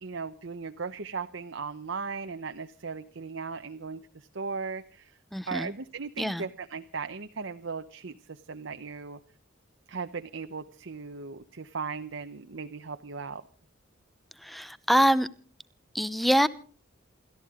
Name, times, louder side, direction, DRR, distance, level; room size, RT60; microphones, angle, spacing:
voice 1, 0.0-5.2 5.5-9.2 9.9-13.4, right 5 dB, 65° right, 8 dB, 0.8 m, -37 dB
voice 2, 5.3-5.7 6.2-6.4 14.5-15.3 15.9-16.5, equal, ahead, 16 dB, 0.7 m, -24 dB
28.5 x 13.5 x 3.7 m, 0.42 s
head